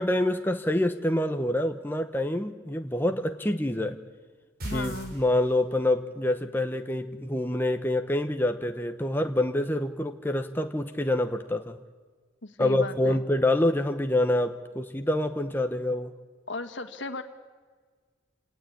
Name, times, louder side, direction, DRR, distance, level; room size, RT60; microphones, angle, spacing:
voice 1, 0.0-4.0 4.7-11.8 12.6-16.1, left 1 dB, 10° left, 6 dB, 0.9 m, -26 dB
voice 2, 4.6-5.1 12.4-13.2 16.5-17.2, left 2 dB, 70° left, 8 dB, 1.8 m, -35 dB
sound 1, 4.6-5.9, right 1 dB, 50° right, 6.0 m, -38 dB
27.5 x 18.5 x 8.7 m, 1.5 s
head